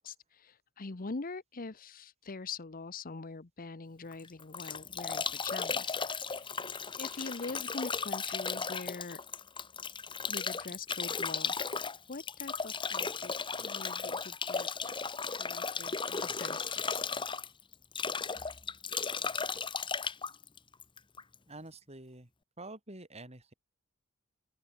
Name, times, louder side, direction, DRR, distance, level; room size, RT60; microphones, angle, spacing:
voice 1, 0.0-6.6 7.0-9.2 10.3-11.8 12.1-13.3 13.6-15.0 15.4-17.0, left 3 dB, 40° left, 0.9 m, -44 dB
Bathtub (filling or washing) / Drip / Trickle dribble, 4.1-21.3, left 5 dB, 25° left, 1.4 m, -35 dB
sound 1, 7.2-8.7, left 10 dB, 60° left, 6.0 m, -61 dB
voice 2, 21.5-22.3 22.6-23.5, right 2 dB, 30° right, 7.7 m, -47 dB
open air
head